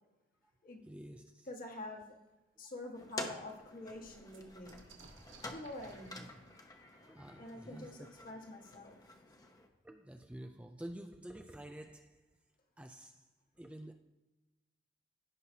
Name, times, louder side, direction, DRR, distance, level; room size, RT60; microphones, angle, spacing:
voice 1, 0.8-1.5 3.0-3.1 6.0-6.1 7.1-8.1 9.8-12.4 12.8-13.9, right 1 dB, 5° right, 5 dB, 0.4 m, -50 dB
voice 2, 1.5-2.2 2.6-4.8 5.5-6.3 7.4-9.0, left 1 dB, 45° left, 0 dB, 1.5 m, -47 dB
Frozen boing in Alaska, 2.3-2.4 2.8-2.9 3.2-8.7 9.7-9.8 10.0-10.7, right 3 dB, 75° right, 1.6 m, -62 dB
sound 1, 2.9-9.7, left 2 dB, 20° left, 0.8 m, -49 dB
16.0 x 5.7 x 2.8 m, 1.1 s
head